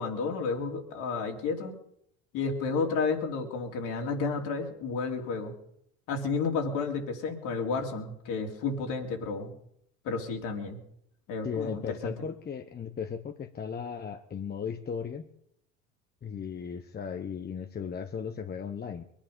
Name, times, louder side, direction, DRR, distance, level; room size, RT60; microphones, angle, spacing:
voice 1, 0.0-1.7 2.3-5.5 6.1-9.5 10.0-10.8 11.3-12.1, left 4 dB, 60° left, 1 dB, 3.5 m, -31 dB
voice 2, 11.4-15.3 16.2-19.0, left 7 dB, 25° left, 7 dB, 1.1 m, -36 dB
23.0 x 10.5 x 5.5 m, 0.73 s
hypercardioid pair, 70°, 35 cm